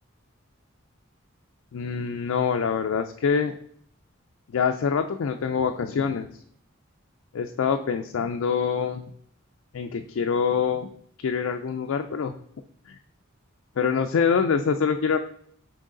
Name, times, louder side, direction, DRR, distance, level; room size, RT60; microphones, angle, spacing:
voice 1, 1.7-3.5 4.5-6.3 7.3-9.1 9.7-10.9 11.2-12.3 12.9-13.0 13.8-15.2, left 6 dB, 75° left, 5 dB, 0.4 m, -25 dB
6.3 x 4.6 x 3.8 m, 0.66 s
head